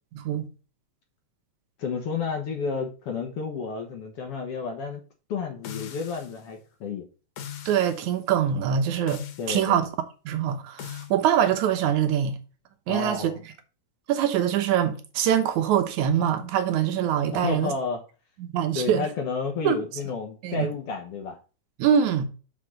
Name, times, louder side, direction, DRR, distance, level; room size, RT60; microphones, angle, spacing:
voice 1, 0.1-0.5 7.7-9.9 10.3-12.4 12.9-13.3 14.1-17.7 18.4-19.1 19.6-19.8 20.4-20.7 21.8-22.3, right 9 dB, 75° right, 2.4 m, -24 dB
voice 2, 1.8-5.0 5.3-7.1 9.4-9.9 12.9-13.4 17.3-18.0 18.7-21.4, left 5 dB, 60° left, 1.9 m, -31 dB
sound 1, 5.6-6.4 7.4-8.1 9.1-9.6 10.8-11.1, left 9 dB, 85° left, 2.7 m, -39 dB
5.8 x 5.3 x 6.4 m
omnidirectional pair, 3.5 m